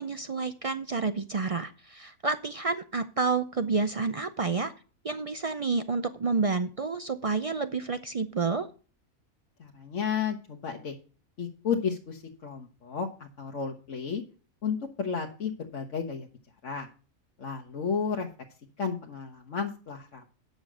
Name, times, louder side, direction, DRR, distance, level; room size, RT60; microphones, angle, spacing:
voice 1, 0.0-4.7 5.0-8.7, right 4 dB, 65° right, 10 dB, 0.3 m, -29 dB
voice 2, 9.6-11.0 11.4-14.2 14.6-16.3 16.6-16.9 17.4-18.3 18.8-20.4, left 6 dB, 60° left, 2 dB, 1.5 m, -32 dB
9.7 x 6.6 x 6.1 m, 0.37 s
omnidirectional pair, 1.5 m